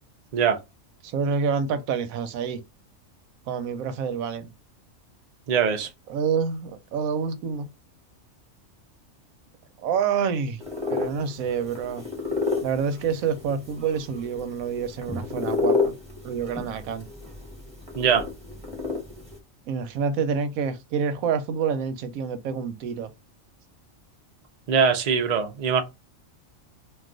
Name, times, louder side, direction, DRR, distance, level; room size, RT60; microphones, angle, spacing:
voice 1, 1.0-2.6 3.5-4.5 6.1-7.7 9.8-10.6 10.9-12.0 12.6-16.0 16.2-17.1 19.7-23.1, right 6 dB, 90° right, 1.0 m, -27 dB
voice 2, 5.5-5.9 18.0-18.3 24.7-25.8, right 6 dB, 70° right, 0.3 m, -22 dB
sound 1, 10.6-19.4, left 4 dB, 5° right, 0.8 m, -31 dB
2.4 x 2.3 x 3.7 m
omnidirectional pair, 1.4 m